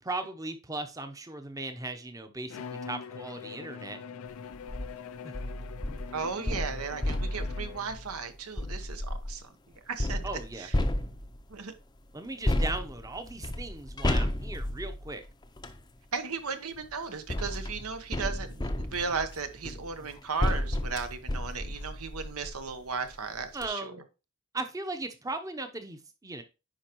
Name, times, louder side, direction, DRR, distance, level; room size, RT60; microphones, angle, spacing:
voice 1, 0.0-4.0 5.2-5.3 10.2-10.7 12.1-15.2 23.5-24.0 24.5-26.4, right 2 dB, 15° right, 0.7 m, -37 dB
Bowed string instrument, 2.5-8.1, left 6 dB, 80° left, 0.4 m, -43 dB
sound 1, 4.5-4.9 5.3-9.4 10.0-11.5 12.4-15.8 16.8-22.7 23.1-23.2 23.5-23.7, left 1 dB, 20° left, 0.5 m, -32 dB
voice 2, 6.1-9.5 9.8-10.2 10.6-10.7 11.5-11.7 16.1-23.9, right 5 dB, 90° right, 1.1 m, -35 dB
10.0 x 4.7 x 3.0 m
head